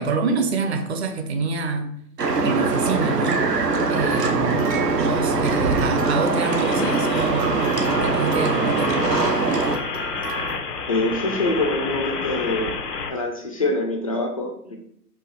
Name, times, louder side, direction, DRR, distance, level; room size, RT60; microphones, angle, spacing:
voice 1, 0.0-1.9 2.4-3.5 3.9-4.7 4.9-8.9, right 4 dB, 45° right, 6 dB, 0.7 m, -26 dB
sound 1, 2.2-9.8, right 3 dB, 85° right, 0.8 m, -22 dB
sound 2, 4.1-10.5, right 5 dB, 70° right, 1.6 m, -35 dB
sound 3, 6.4-13.1, left 5 dB, 85° left, 0.9 m, -30 dB
voice 2, 10.9-12.7 13.1-14.8, left 2 dB, 25° left, 2 dB, 0.4 m, -24 dB
4.6 x 2.4 x 4.5 m, 0.69 s
figure-of-eight pair, 130°, 47 cm